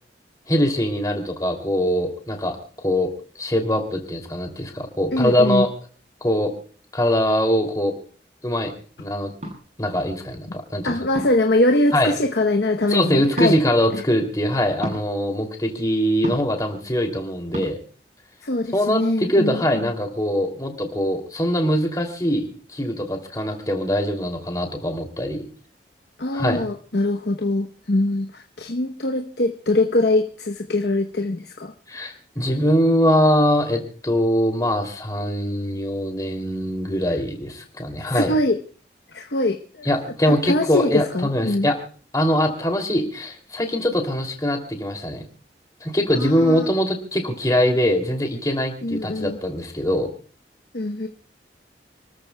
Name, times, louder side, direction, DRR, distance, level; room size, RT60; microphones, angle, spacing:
voice 1, 0.5-3.1 3.4-5.7 6.2-6.5 6.9-7.9 8.4-8.7 9.0-9.3 9.8-11.0 11.9-12.1 12.9-17.8 18.7-25.4 26.3-26.6 31.9-38.3 39.8-41.7 42.1-45.2 45.8-50.1, equal, 20° left, 3 dB, 2.8 m, -22 dB
voice 2, 5.1-5.7 10.8-13.6 13.9-14.0 18.4-19.6 26.2-31.7 38.0-38.6 39.1-39.9 40.3-41.7 46.2-46.7 48.8-49.4 50.7-51.1, left 2 dB, 70° left, 4 dB, 0.9 m, -23 dB
sound 1, 9.4-9.6 11.1-11.5 13.3-13.5 14.8-15.0 16.2-16.6 17.5-17.7, equal, 40° right, 7.3 m, -29 dB
30.0 x 13.5 x 2.3 m, 0.42 s
head